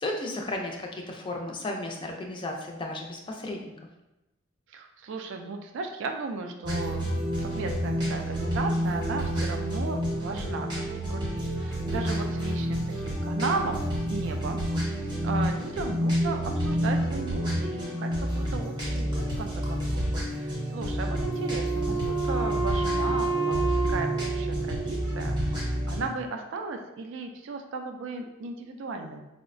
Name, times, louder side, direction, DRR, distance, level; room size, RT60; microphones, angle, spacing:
voice 1, 0.0-3.7, left 1 dB, 25° left, 1 dB, 0.4 m, -34 dB
voice 2, 4.7-14.6 14.9-20.0 20.3-29.3, right 3 dB, 60° right, 4 dB, 0.3 m, -36 dB
sound 1, 6.6-26.1, equal, 20° right, 0.7 m, -29 dB
Wind instrument woodwind instrument, 21.0-25.5, right 5 dB, 70° left, 0.6 m, -30 dB
4.5 x 2.1 x 2.5 m, 0.95 s
head